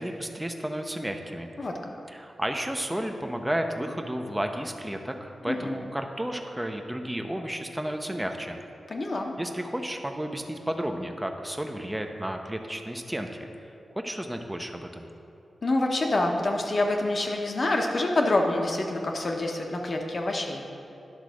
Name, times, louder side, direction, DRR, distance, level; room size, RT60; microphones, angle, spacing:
voice 1, 0.0-1.5 2.1-8.6 9.4-13.5 14.0-15.1, right 1 dB, 10° right, 4 dB, 0.7 m, -32 dB
voice 2, 1.6-1.9 5.4-5.8 8.9-9.3 15.6-20.6, left 2 dB, 45° left, 2 dB, 1.0 m, -27 dB
10.5 x 4.0 x 6.2 m, 2.8 s
wide cardioid pair, 85°, 0 cm